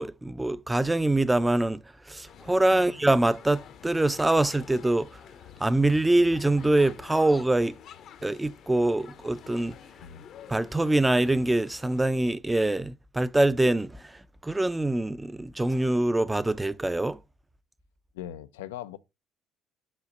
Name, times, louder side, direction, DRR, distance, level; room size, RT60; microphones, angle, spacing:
voice 1, 0.0-5.2 5.6-7.8 8.2-9.8 10.5-17.2, right 2 dB, 15° right, 0.6 m, -24 dB
sound 1, 2.3-12.1, left 9 dB, 55° left, 0.8 m, -48 dB
voice 2, 18.1-19.0, left 11 dB, 85° left, 0.5 m, -40 dB
7.6 x 2.8 x 6.0 m
hypercardioid pair, 60°, 0 cm